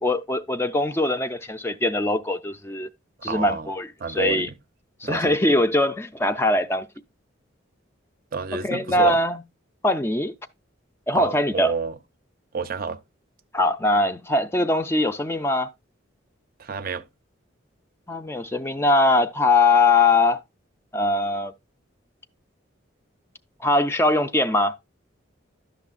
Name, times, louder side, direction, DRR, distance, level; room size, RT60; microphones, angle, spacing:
voice 1, 0.0-2.9 3.2-4.5 5.0-6.9 8.6-9.4 9.8-10.3 11.1-11.7 13.5-15.7 18.1-20.4 20.9-21.5 23.6-24.7, left 2 dB, 10° left, 0.3 m, -21 dB
voice 2, 3.2-3.7 4.0-4.5 5.0-5.4 8.3-9.2 11.1-12.0 12.5-13.0 16.6-17.0, right 5 dB, 45° right, 0.5 m, -29 dB
11.5 x 6.1 x 2.4 m
head